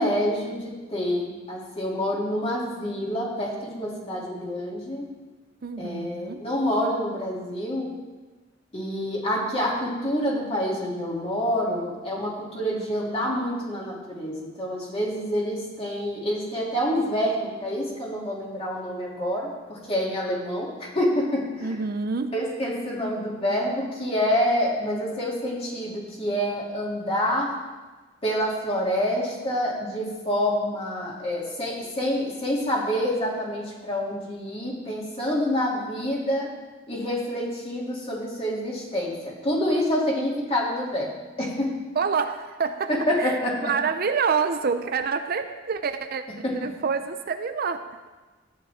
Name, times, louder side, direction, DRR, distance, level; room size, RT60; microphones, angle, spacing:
voice 1, 0.0-5.0 5.8-7.9 8.7-21.7 22.3-27.5 28.2-36.5 36.9-41.7 42.9-43.7 46.4-46.5, equal, 30° left, -4 dB, 2.8 m, -27 dB
voice 2, 5.6-6.4 21.6-22.4 41.9-42.9 43.2-48.1, right 5 dB, 50° right, 9 dB, 0.5 m, -27 dB
14.0 x 9.6 x 3.6 m, 1.3 s
head